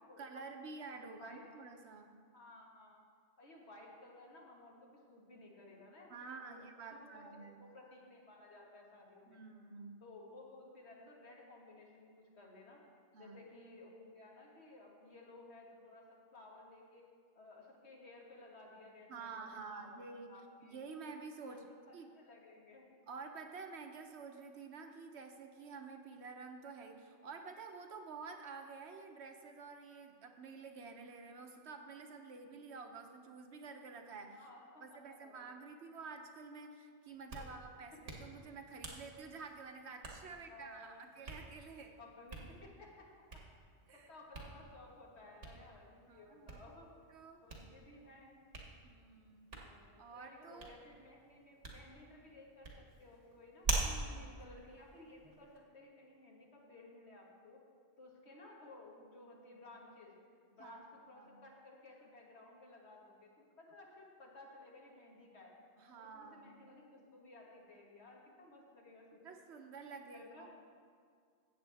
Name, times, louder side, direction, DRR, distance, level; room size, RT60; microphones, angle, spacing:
voice 1, 0.2-2.1 6.1-7.7 9.3-10.0 13.1-13.4 19.1-20.3 20.6-21.7 21.9-22.1 23.1-34.4 34.8-42.0 43.9-44.1 46.1-46.6 47.1-47.4 48.8-49.5 50.0-50.7 53.8-54.4 60.6-60.8 61.1-61.4 65.8-66.6 69.2-70.5, right 4 dB, 70° right, 5 dB, 1.1 m, -50 dB
voice 2, 2.3-3.0 3.4-9.4 10.0-12.8 13.2-17.1 17.4-20.0 20.3-20.8 21.4-22.9 34.3-35.5 40.3-41.1 42.0-43.1 43.9-46.9 47.4-48.4 49.5-53.7 54.0-57.6 58.0-60.1 60.5-65.6 65.9-69.4 70.1-70.5, left 2 dB, 70° left, -2 dB, 1.9 m, -57 dB
Hands, 37.1-55.6, right 3 dB, 90° right, 1.7 m, -46 dB
15.0 x 7.9 x 3.4 m, 2.1 s
omnidirectional pair, 1.2 m